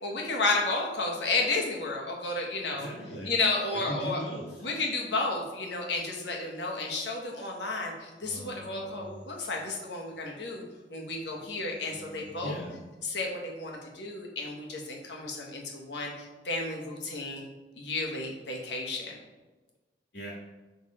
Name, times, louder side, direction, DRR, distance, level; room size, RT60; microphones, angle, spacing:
voice 1, 0.0-2.9 3.3-4.2 4.6-10.6 10.9-12.5 13.0-17.4 17.8-19.1, left 3 dB, 75° left, -1 dB, 1.2 m, -32 dB
voice 2, 2.7-3.3 3.7-4.7 12.4-12.7 20.1-20.3, equal, 90° left, -5 dB, 1.7 m, -38 dB
sound 1, 8.2-10.2 11.2-12.7, equal, 25° left, 0.7 m, -50 dB
6.4 x 3.4 x 4.2 m, 1.2 s
head